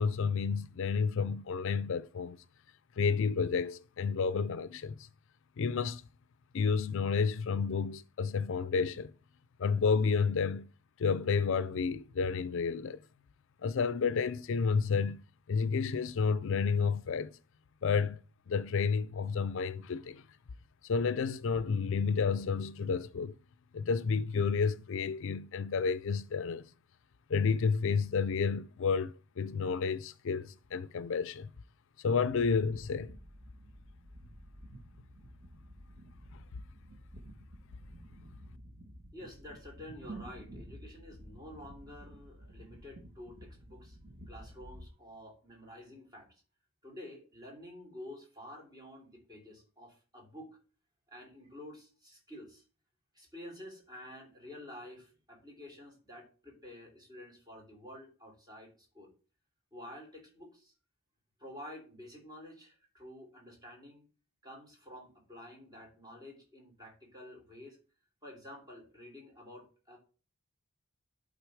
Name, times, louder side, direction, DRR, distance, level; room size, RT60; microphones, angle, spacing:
voice 1, 0.0-2.4 3.0-5.1 5.6-6.0 6.5-9.1 9.6-10.7 11.0-13.0 13.6-15.2 15.5-17.3 17.8-18.2 18.5-20.2 20.8-23.3 23.7-26.7 27.3-31.5 32.0-33.1 36.3-36.4, left 5 dB, 60° left, 0.4 m, -30 dB
sound 1, 32.2-44.9, right 1 dB, 65° right, 1.5 m, -51 dB
voice 2, 39.1-46.3 46.8-50.6 51.1-52.6 53.1-59.1 59.7-60.7 61.4-64.1 64.4-67.8 68.2-70.0, left 1 dB, 20° right, 3.1 m, -50 dB
11.5 x 3.9 x 4.8 m
head